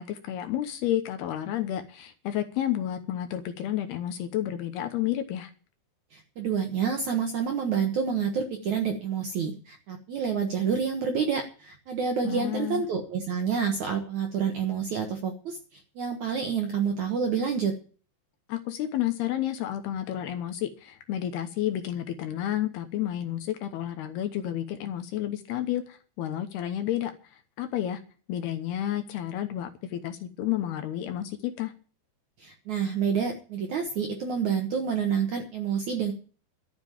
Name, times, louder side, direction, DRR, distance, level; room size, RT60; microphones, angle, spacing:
voice 1, 0.0-5.5 12.2-12.9 18.5-27.1 27.6-28.0 28.3-31.7, left 12 dB, 70° left, 7 dB, 2.7 m, -31 dB
voice 2, 6.1-17.7 32.4-36.1, right 6 dB, 65° right, 3 dB, 2.0 m, -28 dB
12.5 x 7.4 x 9.0 m, 0.39 s
omnidirectional pair, 5.2 m